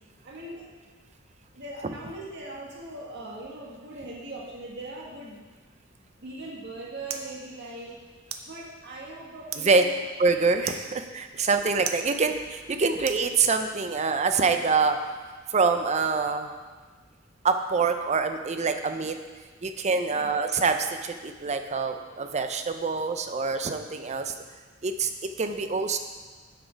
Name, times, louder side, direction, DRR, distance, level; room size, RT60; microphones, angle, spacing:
voice 1, 0.2-0.6 1.5-5.4 6.2-8.0 8.4-10.0 20.1-20.3, right 2 dB, 60° right, -4 dB, 1.7 m, -40 dB
sound 1, 6.3-13.8, right 7 dB, 90° right, 0.7 m, -42 dB
voice 2, 10.2-15.0 15.5-16.5 17.4-19.2 19.6-24.3 24.8-25.1 25.4-26.0, right 4 dB, 35° right, 7 dB, 0.6 m, -25 dB
7.9 x 6.3 x 5.1 m, 1.4 s
head